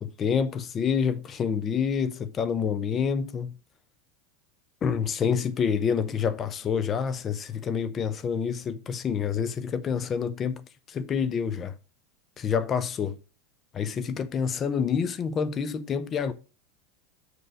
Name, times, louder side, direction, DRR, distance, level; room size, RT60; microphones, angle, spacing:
voice 1, 0.0-3.5 4.8-10.6 10.9-11.7 12.4-13.2 13.7-16.3, left 6 dB, 30° left, 0.7 m, -27 dB
6.2 x 5.5 x 4.9 m
hypercardioid pair, 95°, 0 cm